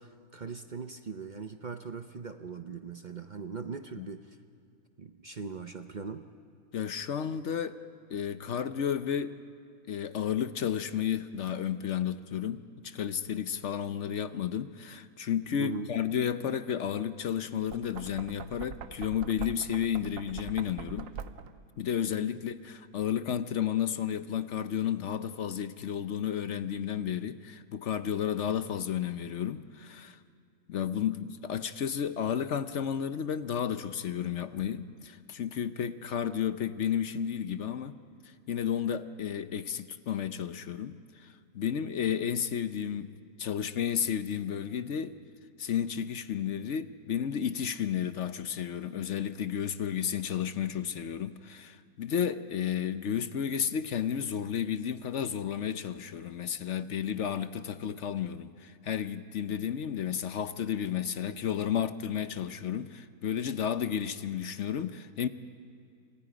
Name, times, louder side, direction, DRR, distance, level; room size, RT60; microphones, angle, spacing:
voice 1, 0.0-4.4 5.0-6.2 15.6-15.9 22.3-22.4, right 5 dB, 45° right, 0.6 m, -40 dB
voice 2, 6.7-7.8 8.1-9.3 9.9-21.1 21.8-30.2 30.7-38.0 38.5-43.1 43.4-45.2 45.6-65.3, left 8 dB, 60° left, 0.9 m, -32 dB
Knock, 17.6-21.7, right 7 dB, 65° right, 1.1 m, -43 dB
28.0 x 25.5 x 5.1 m
omnidirectional pair, 1.6 m